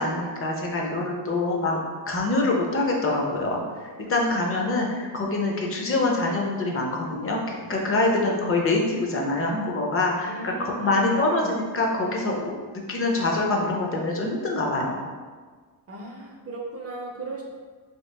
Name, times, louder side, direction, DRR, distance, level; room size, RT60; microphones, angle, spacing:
voice 1, 0.0-1.8 2.1-12.5 12.9-15.0, left 2 dB, 30° left, 0 dB, 0.5 m, -25 dB
voice 2, 10.2-11.5 15.9-17.4, right 3 dB, 30° right, -1 dB, 0.5 m, -37 dB
2.9 x 2.8 x 3.2 m, 1.5 s
cardioid pair, 130°, 46 cm